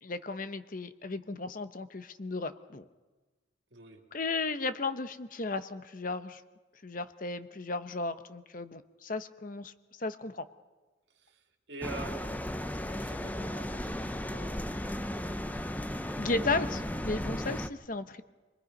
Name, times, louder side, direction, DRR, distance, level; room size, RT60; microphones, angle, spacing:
voice 1, 0.0-2.8 4.1-6.4 6.8-9.7 10.0-10.5 16.2-18.2, left 3 dB, 45° left, 11 dB, 0.9 m, -35 dB
voice 2, 3.7-4.0 11.1-12.4 12.9-15.1 16.0-16.6, right 3 dB, 60° right, 3 dB, 2.4 m, -47 dB
sound 1, 11.8-17.7, left 1 dB, 10° left, 0.6 m, -35 dB
26.0 x 21.5 x 5.3 m, 1.2 s
head